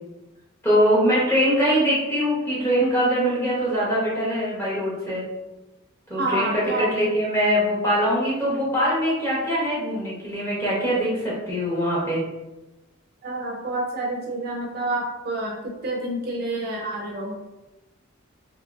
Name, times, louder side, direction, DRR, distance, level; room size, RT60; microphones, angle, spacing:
voice 1, 0.6-5.2 6.1-12.2, equal, 15° left, -7 dB, 1.0 m, -22 dB
voice 2, 6.2-6.9 13.2-17.4, right 1 dB, 50° right, -1 dB, 0.5 m, -28 dB
2.9 x 2.8 x 2.4 m, 1.1 s
head